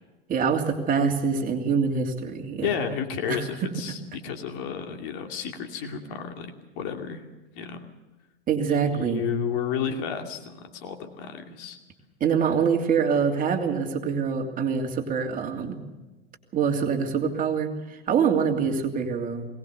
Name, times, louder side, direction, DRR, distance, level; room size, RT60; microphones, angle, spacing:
voice 1, 0.3-2.7 3.3-3.4 8.5-9.2 12.2-15.8 16.5-19.5, right 6 dB, 25° right, 2 dB, 2.9 m, -25 dB
voice 2, 2.6-7.2 7.6-7.9 8.7-11.8, left 7 dB, 55° left, 4 dB, 2.6 m, -32 dB
21.5 x 19.0 x 6.7 m, 1.1 s
hypercardioid pair, 100°, 31 cm